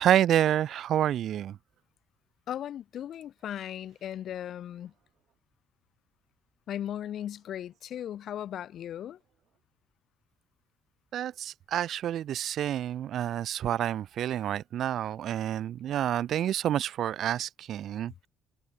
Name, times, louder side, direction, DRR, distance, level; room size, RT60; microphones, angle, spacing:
voice 1, 0.0-1.6 11.1-18.3, right 11 dB, 55° right, 0.8 m, -28 dB
voice 2, 2.5-4.9 6.7-9.2, left 10 dB, 50° left, 4.6 m, -37 dB
cardioid pair, 150°, 0 cm